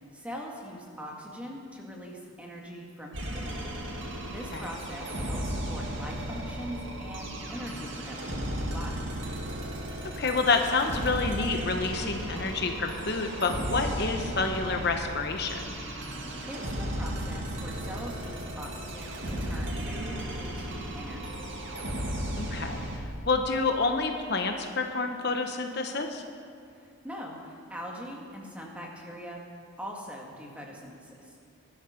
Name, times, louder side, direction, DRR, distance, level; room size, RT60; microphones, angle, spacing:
voice 1, 0.1-3.6 4.3-9.1 16.5-21.5 26.7-29.4 29.8-31.4, equal, 5° right, -1 dB, 1.9 m, -42 dB
sound 1, 3.1-23.0, right 1 dB, 55° right, 2.2 m, -35 dB
voice 2, 10.2-15.7 22.4-22.8 23.2-26.2, left 3 dB, 50° left, 4 dB, 1.0 m, -28 dB
20.5 x 12.5 x 5.1 m, 2.4 s
head